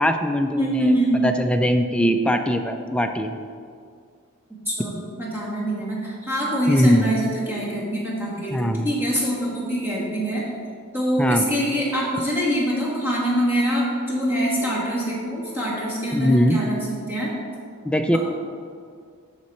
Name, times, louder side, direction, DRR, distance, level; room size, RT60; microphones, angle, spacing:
voice 1, 0.0-1.0 1.2-3.3 6.7-7.1 8.5-8.9 11.2-11.4 16.1-16.6 17.8-18.2, equal, 5° left, 5 dB, 0.4 m, -21 dB
voice 2, 0.6-1.2 4.7-10.4 10.9-17.3, equal, 10° right, -6 dB, 2.1 m, -24 dB
12.5 x 4.2 x 4.3 m, 2.2 s
head